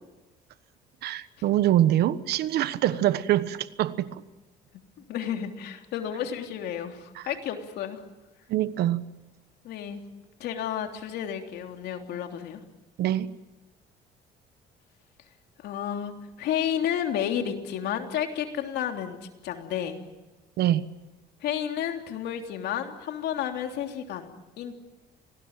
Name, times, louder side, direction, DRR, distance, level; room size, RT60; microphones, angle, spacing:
voice 1, 1.0-4.2 7.1-7.3 8.5-9.0 13.0-13.3 20.6-20.8, right 12 dB, 75° right, 14 dB, 1.3 m, -24 dB
voice 2, 5.1-8.0 9.6-10.0 10.4-12.6 15.6-20.0 21.4-24.7, left 9 dB, 75° left, 4 dB, 3.3 m, -31 dB
27.0 x 19.5 x 9.0 m, 1.1 s
cardioid pair, 110°, 17 cm